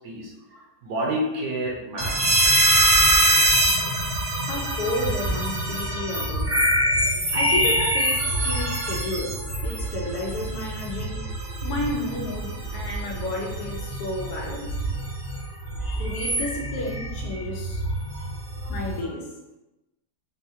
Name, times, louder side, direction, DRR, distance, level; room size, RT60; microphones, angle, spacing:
voice 1, 0.0-2.7 15.8-16.1 18.1-18.7 19.0-19.1, right 1 dB, 65° right, -2 dB, 1.1 m, -32 dB
sound 1, 2.0-19.0, right 1 dB, 40° right, 0.5 m, -24 dB
voice 2, 4.5-6.5 7.3-11.2 11.6-14.8 16.0-17.8 18.7-19.3, left 2 dB, 70° left, -1 dB, 1.2 m, -32 dB
3.9 x 2.5 x 2.7 m, 0.97 s
omnidirectional pair, 1.8 m